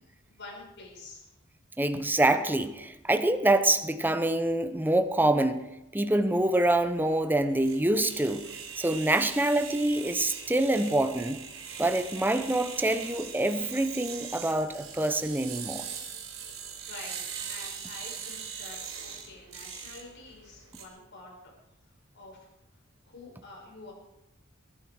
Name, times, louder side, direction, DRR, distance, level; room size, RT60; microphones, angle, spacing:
voice 1, 0.3-1.3 16.5-17.2 17.5-21.3 22.1-22.5 23.0-23.9, left 3 dB, 60° left, 0 dB, 6.0 m, -47 dB
voice 2, 1.8-11.4 11.8-15.9, right 1 dB, 10° right, 9 dB, 0.9 m, -26 dB
sound 1, 6.2-20.8, right 7 dB, 80° right, 4.0 m, -41 dB
22.0 x 11.0 x 4.8 m, 0.91 s
head